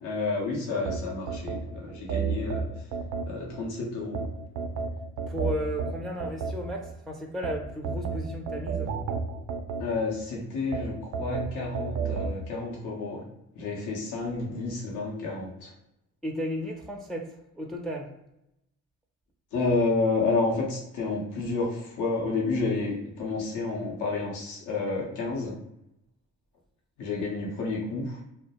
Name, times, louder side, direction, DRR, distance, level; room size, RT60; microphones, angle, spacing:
voice 1, 0.0-2.9 3.3-4.2 9.8-13.2 13.5-15.7 19.5-25.6 27.0-28.2, left 3 dB, 80° left, -2 dB, 0.8 m, -30 dB
sound 1, 0.9-3.6 4.1-6.9 7.4-10.2 10.7-12.4, right 5 dB, 70° right, 0.4 m, -32 dB
voice 2, 5.3-8.9 16.2-17.3 17.5-18.1, equal, ahead, 1 dB, 0.3 m, -34 dB
2.3 x 2.1 x 2.7 m, 0.83 s
cardioid pair, 90°, 30 cm